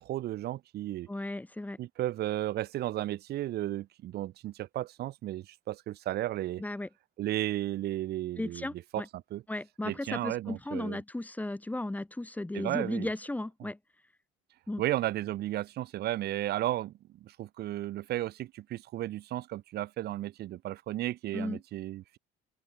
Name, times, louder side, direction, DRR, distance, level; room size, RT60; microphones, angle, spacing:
voice 1, 0.0-1.1 1.8-6.6 7.2-8.7 8.9-9.0 9.3-9.4 9.8-11.0 12.5-13.1 14.8-16.9 17.2-22.2, right 14 dB, 70° right, 2.9 m, -34 dB
voice 2, 1.1-1.8 6.6-6.9 8.4-9.1 9.5-13.8 14.7-14.8 21.3-21.6, left 1 dB, 10° left, 4.0 m, -35 dB
open air
cardioid pair, 110°, 17 cm